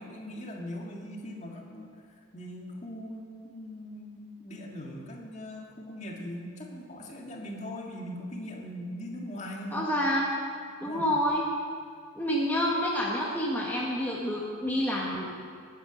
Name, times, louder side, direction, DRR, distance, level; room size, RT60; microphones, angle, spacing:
voice 1, 0.0-1.9 2.3-9.9 10.8-11.1, left 1 dB, 35° left, 0 dB, 2.0 m, -40 dB
voice 2, 9.7-10.4 10.8-11.5 12.1-15.3, equal, 10° left, -4 dB, 1.4 m, -28 dB
20.5 x 9.0 x 6.3 m, 2.1 s
head